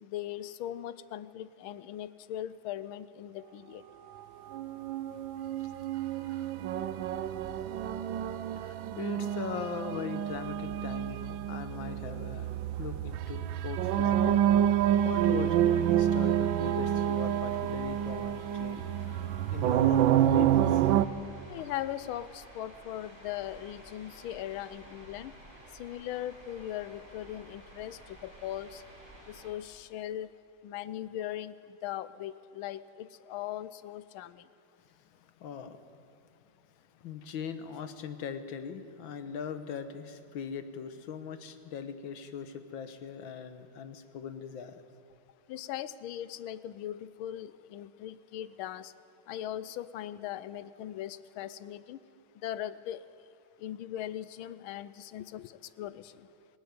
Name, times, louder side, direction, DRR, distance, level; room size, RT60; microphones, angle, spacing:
voice 1, 0.0-3.8 21.5-25.3 25.8-28.8 29.3-30.4 30.6-31.5 31.8-34.4 45.5-48.9 49.3-52.0 52.4-53.1 53.6-55.5 55.8-56.1, left 12 dB, 85° left, 16 dB, 1.5 m, -39 dB
sound 1, 4.5-21.1, right 11 dB, 75° right, 1.4 m, -28 dB
voice 2, 6.2-6.6 8.6-12.5 12.8-14.4 15.0-19.2 19.5-20.9 35.4-35.8 37.0-44.8, left 7 dB, 70° left, 10 dB, 1.9 m, -40 dB
sound 2, 14.9-29.5, right 1 dB, 35° right, 5.8 m, -53 dB
20.0 x 17.0 x 9.6 m, 2.4 s
omnidirectional pair, 2.2 m